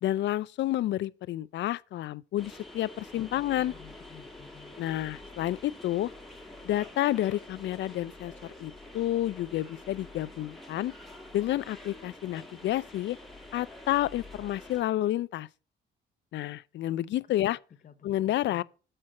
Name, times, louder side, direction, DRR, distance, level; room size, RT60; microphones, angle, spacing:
voice 1, 0.0-3.7 4.8-6.1 6.6-10.9 11.3-13.2 13.5-15.5 16.3-17.6 18.0-18.6, left 14 dB, 65° left, 0.4 m, -30 dB
sound 1, 2.4-14.8, left 2 dB, ahead, 1.6 m, -47 dB
voice 2, 3.5-4.8 16.9-17.1 17.8-18.6, left 8 dB, 40° left, 0.8 m, -53 dB
7.6 x 4.4 x 6.4 m
cardioid pair, 90°, 20 cm